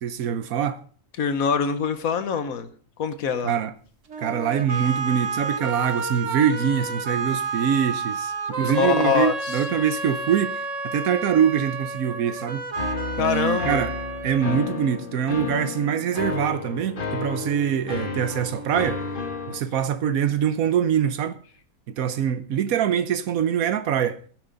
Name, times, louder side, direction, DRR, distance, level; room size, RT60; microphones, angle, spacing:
voice 1, 0.0-0.8 3.4-3.7 4.2-12.6 13.2-13.9 14.2-19.1 19.5-21.4 21.9-24.2, right 8 dB, 90° right, 1.3 m, -24 dB
voice 2, 1.2-2.7 3.0-3.5 8.6-9.6 13.2-13.8, left 7 dB, 80° left, 1.4 m, -24 dB
sound 1, 4.1-15.1, right 3 dB, 60° right, 1.7 m, -31 dB
sound 2, 12.8-19.6, left 4 dB, 40° left, 1.8 m, -32 dB
16.0 x 10.5 x 3.9 m
omnidirectional pair, 1.4 m